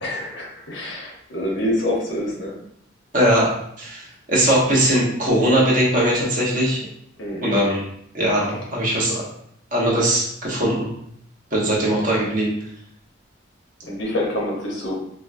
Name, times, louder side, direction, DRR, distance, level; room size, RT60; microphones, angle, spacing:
voice 1, 0.0-2.5 7.2-7.4 13.8-15.0, left 1 dB, 70° left, -2 dB, 0.9 m, -26 dB
voice 2, 3.1-6.8 7.4-7.8 8.1-9.2 9.7-10.9 11.5-12.5, right 1 dB, 40° right, -4 dB, 1.0 m, -20 dB
4.6 x 2.2 x 2.5 m, 0.71 s
head